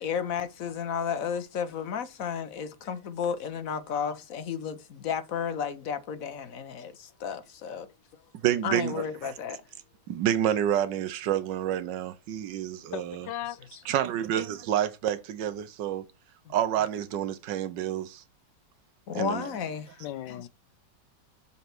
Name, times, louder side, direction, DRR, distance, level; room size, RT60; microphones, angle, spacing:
voice 1, 0.0-7.9 8.6-9.6 16.5-16.6 19.1-20.5, left 7 dB, 55° left, 1.3 m, -33 dB
voice 2, 8.4-9.3 10.1-13.3 13.9-16.0 16.5-18.2 19.1-19.5, right 11 dB, 85° right, 1.4 m, -28 dB
voice 3, 12.9-13.6 20.0-20.5, left 12 dB, 85° left, 1.3 m, -36 dB
7.4 x 4.3 x 5.9 m
omnidirectional pair, 1.9 m